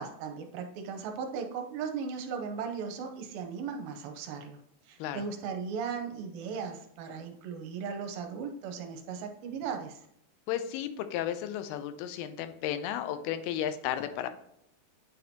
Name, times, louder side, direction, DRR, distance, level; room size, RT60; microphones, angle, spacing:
voice 1, 0.0-4.6 4.9-10.0, right 6 dB, 85° right, 5 dB, 2.4 m, -37 dB
voice 2, 10.5-14.3, left 10 dB, 90° left, 10 dB, 2.6 m, -33 dB
9.3 x 4.3 x 2.8 m, 0.75 s
omnidirectional pair, 4.4 m